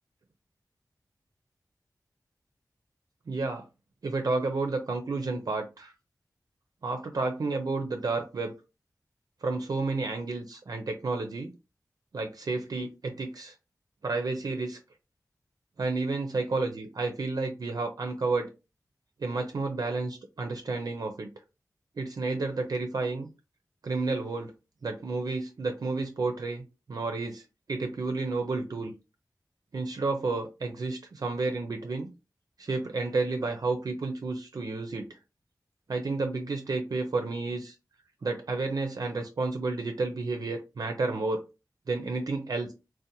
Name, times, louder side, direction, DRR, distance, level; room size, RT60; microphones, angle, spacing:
voice 1, 3.3-3.6 4.0-5.9 6.8-8.5 9.4-11.5 12.1-13.5 14.0-14.8 15.8-18.5 19.2-21.3 22.0-23.3 23.8-24.5 24.8-26.6 26.9-27.4 27.7-28.9 29.7-32.1 32.6-35.0 35.9-37.7 38.2-41.4 41.9-42.7, right 3 dB, 65° right, 5 dB, 0.4 m, -31 dB
2.5 x 2.1 x 2.7 m, 0.28 s
wide cardioid pair, 85°, 7 cm